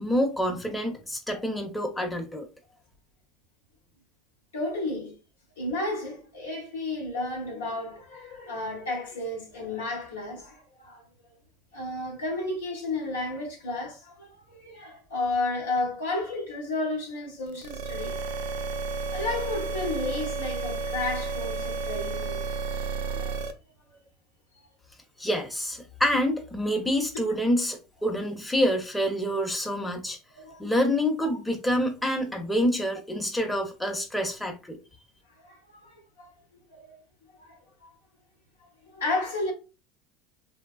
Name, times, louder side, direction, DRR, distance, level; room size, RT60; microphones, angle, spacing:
voice 1, 0.0-2.5 25.2-30.2 30.6-34.8, equal, 5° left, 0.8 m, -27 dB
voice 2, 4.5-5.2 5.6-11.0 11.7-18.2 19.1-22.4 23.0-23.5 24.6-24.7 30.4-30.7 31.2-31.4 35.4-36.3 36.7-37.0 37.4-37.9 38.6-39.5, left 2 dB, 85° left, 1.2 m, -33 dB
sound 1, 17.5-23.5, right 4 dB, 70° right, 0.4 m, -32 dB
3.2 x 2.2 x 2.4 m
hypercardioid pair, 80°, 0 cm